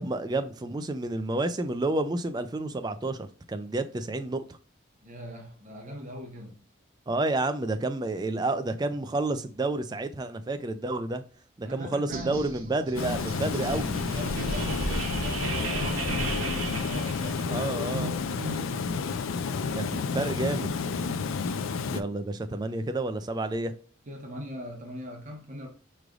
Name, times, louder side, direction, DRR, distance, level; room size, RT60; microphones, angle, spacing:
voice 1, 0.0-4.4 7.1-11.2 11.6-14.0 17.5-18.1 19.7-20.7 21.9-23.7, right 2 dB, 20° right, 0.3 m, -30 dB
voice 2, 5.0-6.6 11.6-12.8 13.9-19.1 24.1-25.7, equal, 35° right, 0.9 m, -40 dB
sound 1, 12.1-17.8, right 2 dB, 85° right, 0.8 m, -34 dB
Water, 12.9-22.0, left 5 dB, 75° left, 0.4 m, -31 dB
5.0 x 3.2 x 2.3 m
head